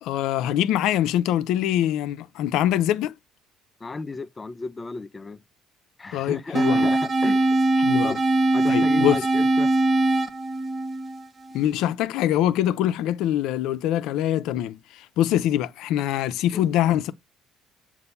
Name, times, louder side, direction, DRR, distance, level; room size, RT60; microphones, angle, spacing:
voice 1, 0.0-3.1 6.1-6.9 7.8-8.2 8.7-9.2 11.5-17.1, left 12 dB, 75° left, 0.5 m, -24 dB
voice 2, 3.8-5.4 6.0-7.7 8.0-8.2 8.5-9.7 16.5-16.7, left 3 dB, 25° left, 0.5 m, -34 dB
sound 1, 6.5-11.6, right 2 dB, 35° right, 0.8 m, -21 dB
6.8 x 2.6 x 5.3 m
supercardioid pair, 90°, 0 cm